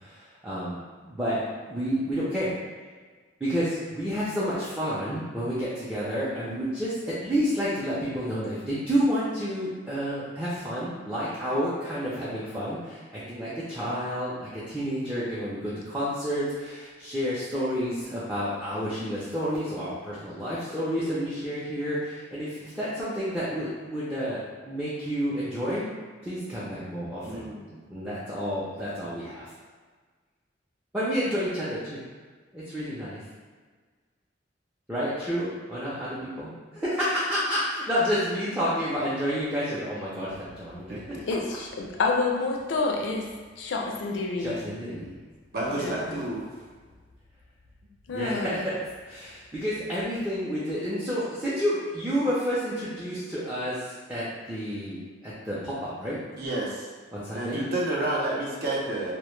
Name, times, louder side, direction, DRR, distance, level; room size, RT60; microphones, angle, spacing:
voice 1, 0.0-1.4 1.7-2.5 3.4-25.8 26.2-27.5 27.9-29.4 30.9-32.0 32.5-33.2 34.9-41.0 44.4-45.2 48.1-48.7 49.0-53.8 54.1-56.2 57.1-57.6, equal, 10° right, -10 dB, 0.4 m, -30 dB
voice 2, 27.2-27.8 40.9-41.2 45.5-46.4 56.3-56.9 57.3-59.1, right 1 dB, 55° right, -5 dB, 0.5 m, -30 dB
voice 3, 41.3-44.7 45.7-46.2 48.1-48.7, left 3 dB, 85° left, 1 dB, 0.4 m, -29 dB
2.1 x 2.0 x 3.0 m, 1.5 s
head